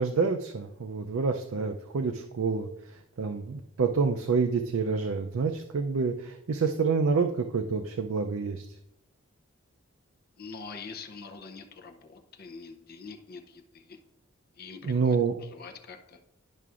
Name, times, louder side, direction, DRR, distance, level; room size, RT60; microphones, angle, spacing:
voice 1, 0.0-2.7 3.2-8.7 14.8-15.4, right 5 dB, 75° right, 5 dB, 0.4 m, -27 dB
voice 2, 10.4-14.0 14.6-16.2, left 4 dB, 45° left, 4 dB, 0.6 m, -45 dB
11.0 x 5.7 x 2.4 m, 0.83 s
head